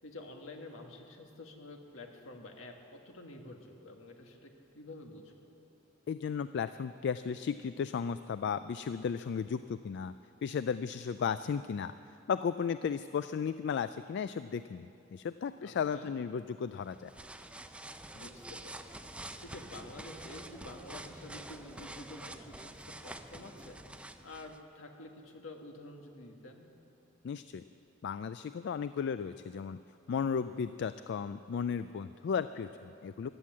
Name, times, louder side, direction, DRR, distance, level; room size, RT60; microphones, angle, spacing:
voice 1, 0.0-5.5 15.6-16.1 18.1-19.1 19.4-26.7, left 2 dB, 75° left, 3 dB, 1.7 m, -49 dB
voice 2, 6.1-10.1 10.4-11.9 12.3-17.1 27.2-27.6 28.0-29.8 30.1-33.3, left 6 dB, 60° left, 12 dB, 0.3 m, -35 dB
sound 1, 16.8-24.6, right 1 dB, 5° right, 0.5 m, -47 dB
16.0 x 11.5 x 7.4 m, 2.7 s
head